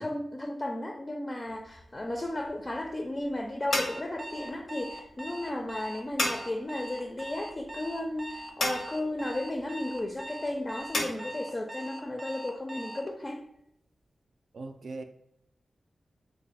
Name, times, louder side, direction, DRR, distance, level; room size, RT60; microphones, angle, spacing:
voice 1, 0.0-13.4, left 1 dB, 30° left, 3 dB, 0.4 m, -34 dB
sound 1, 1.5-11.1, left 2 dB, 80° left, 0.7 m, -37 dB
Alarm, 3.7-13.1, equal, 25° right, 0.6 m, -42 dB
voice 2, 14.5-15.0, right 3 dB, 70° right, 7 dB, 0.4 m, -39 dB
3.0 x 2.2 x 4.1 m, 0.80 s
cardioid pair, 70°, 0 cm